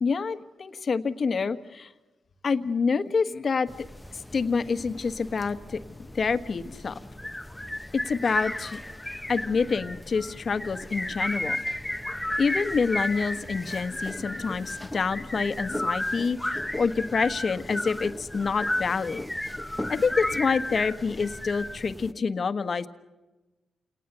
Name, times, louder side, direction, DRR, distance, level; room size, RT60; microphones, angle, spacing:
voice 1, 0.0-1.9 2.4-3.7 4.1-5.8 6.1-7.0 8.0-8.8 9.3-11.6 12.4-19.2 19.9-22.9, left 5 dB, 50° left, 10 dB, 1.4 m, -27 dB
sound 1, 3.7-22.1, left 1 dB, 10° left, 1.1 m, -34 dB
29.0 x 19.0 x 6.9 m, 1.1 s
cardioid pair, 70°, 0 cm